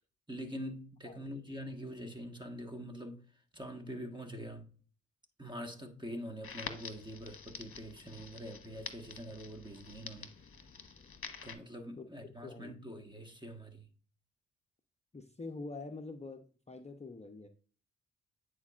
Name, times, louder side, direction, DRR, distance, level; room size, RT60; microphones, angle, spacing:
voice 1, 0.3-3.2 3.5-4.7 5.4-10.3 11.4-13.9, equal, 15° right, 1.5 m, -44 dB
Crackle, 6.4-11.5, left 6 dB, 40° left, 1.2 m, -47 dB
voice 2, 12.4-12.7 15.1-17.5, left 3 dB, 20° left, 0.8 m, -45 dB
9.4 x 4.6 x 2.5 m
hypercardioid pair, 45°, 33 cm